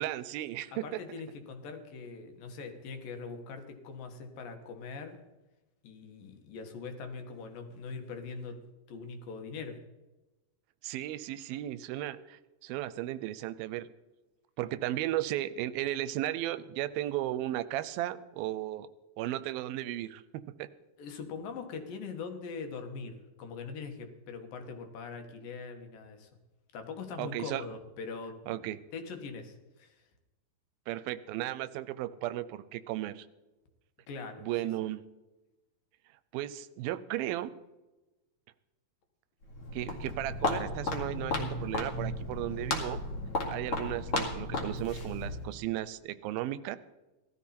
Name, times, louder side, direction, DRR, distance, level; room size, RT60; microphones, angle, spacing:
voice 1, 0.0-1.0 10.8-13.9 14.6-18.9 19.2-20.7 27.2-27.6 28.5-28.8 30.9-33.3 34.4-35.0 36.3-37.5 39.7-43.0 43.5-46.8, right 14 dB, 85° right, 15 dB, 2.4 m, -35 dB
voice 2, 0.7-5.2 5.8-8.6 8.9-9.8 21.0-26.3 26.7-30.0 34.1-34.5, left 4 dB, 70° left, 5 dB, 3.1 m, -42 dB
Walk footsteps, 39.4-45.6, left 2 dB, 45° left, 2.5 m, -34 dB
17.5 x 13.0 x 4.3 m, 1.1 s
omnidirectional pair, 4.2 m